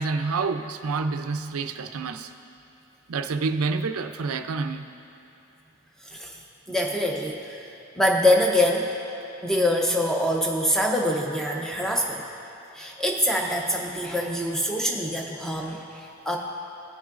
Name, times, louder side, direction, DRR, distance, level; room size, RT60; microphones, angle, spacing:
voice 1, 0.0-2.3 3.1-4.8, right 4 dB, 80° right, 8 dB, 0.5 m, -28 dB
voice 2, 6.0-6.4 6.7-7.7 8.0-8.9 9.4-12.2 12.7-16.4, left 1 dB, ahead, 0 dB, 0.6 m, -24 dB
17.5 x 6.2 x 2.5 m, 2.9 s
head